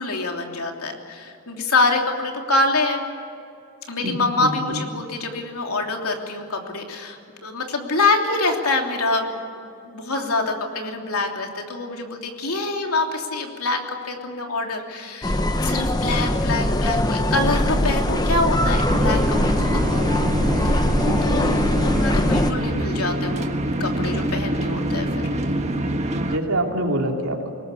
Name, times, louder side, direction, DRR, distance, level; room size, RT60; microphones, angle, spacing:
voice 1, 0.0-3.0 3.9-9.5 9.8-20.3 20.6-20.9 21.2-21.5 21.8-23.5 23.8-25.3, left 3 dB, 90° left, 2 dB, 3.2 m, -25 dB
voice 2, 4.0-4.8 21.0-21.3 26.2-27.5, right 1 dB, 75° right, 1 dB, 3.3 m, -26 dB
sound 1, 15.2-22.5, left 1 dB, 20° left, 0.9 m, -21 dB
sound 2, 18.9-26.4, right 1 dB, 30° right, 1.5 m, -25 dB
22.5 x 20.0 x 8.5 m, 2.6 s
head